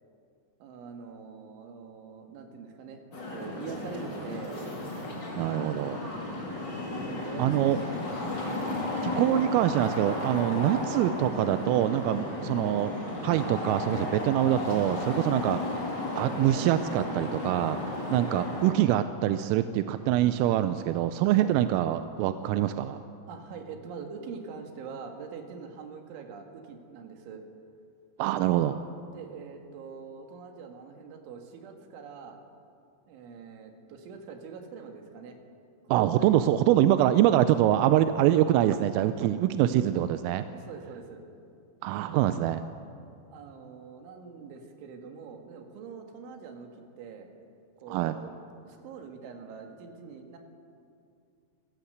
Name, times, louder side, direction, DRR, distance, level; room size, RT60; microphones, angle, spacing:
voice 1, 0.6-3.0 3.3-4.6 6.9-8.4 12.2-12.3 15.2-15.4 17.9-18.1 21.2-21.5 23.3-27.4 28.5-28.6 29.1-32.4 33.1-35.4 35.8-36.5 40.5-41.2 43.3-46.7 47.0-47.3 47.8-48.3 48.6-50.4, right 5 dB, 70° right, 3 dB, 4.3 m, -44 dB
sound 1, 3.1-18.7, left 2 dB, 25° left, 3.6 m, -34 dB
voice 2, 5.4-6.0 7.4-7.8 9.0-12.9 13.2-15.6 16.2-17.8 18.1-23.0 28.2-28.8 35.9-40.5 41.8-42.6 47.9-48.1, right 12 dB, 90° right, 11 dB, 3.3 m, -24 dB
26.0 x 14.5 x 8.0 m, 2.4 s
omnidirectional pair, 5.8 m